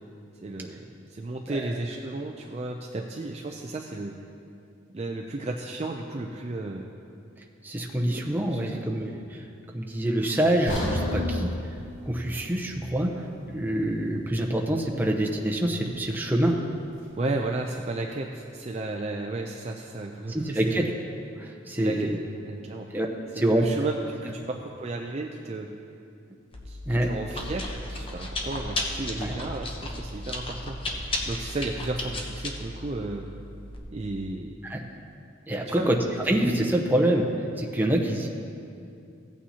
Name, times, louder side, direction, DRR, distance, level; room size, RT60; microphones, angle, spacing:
voice 1, 0.4-4.1 4.9-6.9 8.1-8.2 8.5-8.8 17.2-20.9 21.7-22.1 22.4-22.9 23.4-25.7 26.7-33.3 33.9-34.6 35.6-36.0, right 2 dB, 30° right, 1 dB, 0.4 m, -33 dB
voice 2, 7.6-9.4 9.7-11.5 12.1-13.1 13.5-16.6 20.3-20.9 21.4-22.2 22.9-23.1 23.4-23.6 26.9-27.1 29.2-29.4 34.7-34.8 35.5-36.0 36.3-37.3 37.6-38.3, right 1 dB, 10° right, 0 dB, 0.8 m, -26 dB
sound 1, 10.7-14.7 15.1-15.2 15.8-15.9, left 1 dB, 75° left, 1.9 m, -33 dB
Chewing mastication, 26.5-33.8, left 1 dB, 25° left, 0.9 m, -34 dB
16.0 x 8.6 x 2.8 m, 2.5 s
head